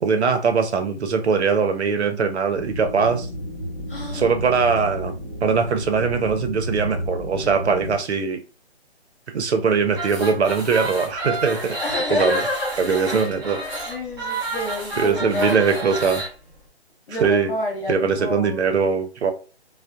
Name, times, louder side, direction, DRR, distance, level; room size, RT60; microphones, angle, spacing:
voice 1, 0.0-3.3 4.1-8.4 9.3-11.8 12.1-12.4 12.8-13.6 15.0-16.2 17.2-17.5 17.9-19.3, right 5 dB, 75° right, 7 dB, 0.7 m, -21 dB
sound 1, 2.5-8.0, equal, 5° right, 0.6 m, -32 dB
voice 2, 3.9-4.3 11.8-13.1 13.4-15.8 17.1-18.8, left 2 dB, 50° left, -2 dB, 1.2 m, -29 dB
sound 2, 9.9-16.3, right 2 dB, 20° right, 1.4 m, -30 dB
2.6 x 2.1 x 2.3 m, 0.34 s
hypercardioid pair, 160°, 33 cm